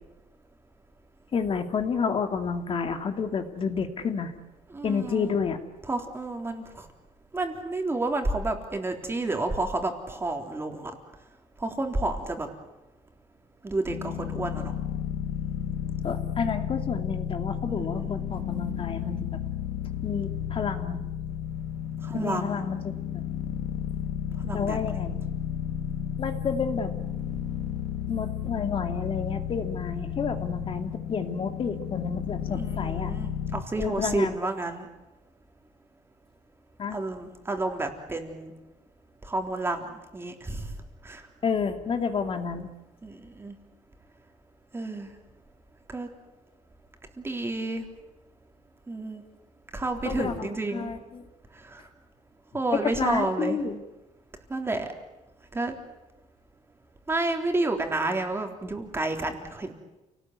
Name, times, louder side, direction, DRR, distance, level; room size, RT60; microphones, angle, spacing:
voice 1, 1.3-4.3 4.8-5.6 16.0-19.4 20.0-21.0 22.1-23.0 24.5-25.2 26.2-26.9 28.1-33.1 33.8-34.4 36.8-37.0 41.4-42.7 50.0-51.2 52.8-53.8, left 5 dB, 40° left, 7 dB, 2.4 m, -30 dB
voice 2, 4.7-5.4 5.9-6.9 7.3-10.9 11.6-12.5 13.6-14.7 17.6-18.1 22.0-22.6 24.4-24.8 32.5-34.9 36.9-38.5 39.2-39.8 40.1-40.7 41.0-41.2 43.0-43.6 44.7-45.1 45.9-46.1 47.2-47.8 48.9-49.2 49.7-50.9 51.6-51.8 52.5-53.6 54.5-54.9 55.5-55.7 57.1-59.7, right 2 dB, 15° right, 4 dB, 3.6 m, -30 dB
sound 1, 13.9-33.6, left 9 dB, 75° left, 2.2 m, -32 dB
29.0 x 19.0 x 9.5 m, 1.0 s
cardioid pair, 140°, 14 cm